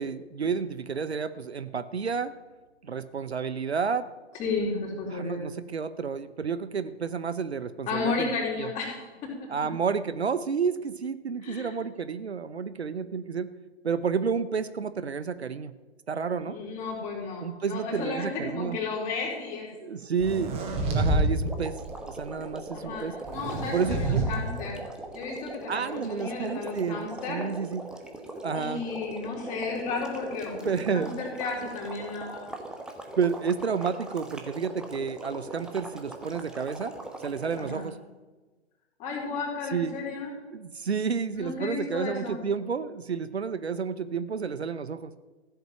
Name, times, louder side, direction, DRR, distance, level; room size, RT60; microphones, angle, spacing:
voice 1, 0.0-2.3 2.8-4.1 5.1-8.3 8.6-8.7 9.5-13.5 13.8-15.7 16.1-16.6 17.4-18.8 19.8-20.6 20.9-23.2 23.7-24.2 25.7-27.9 28.4-28.8 30.6-31.3 33.2-38.0 39.7-40.0 40.5-45.1, right 6 dB, 70° right, 13 dB, 0.9 m, -30 dB
voice 2, 4.4-5.5 7.9-9.3 11.4-11.7 16.5-19.7 20.8-21.3 22.7-23.1 23.3-24.8 25.1-27.4 28.5-32.4 37.6-37.9 39.0-40.4 41.3-42.4, left 4 dB, 20° left, -2 dB, 4.1 m, -33 dB
sound 1, 20.2-21.3 21.6-22.0 23.2-24.3, right 2 dB, 15° right, 2.3 m, -27 dB
sound 2, 21.4-37.9, right 2 dB, ahead, 1.0 m, -41 dB
15.0 x 8.0 x 8.9 m, 1.2 s
figure-of-eight pair, 125°, 34 cm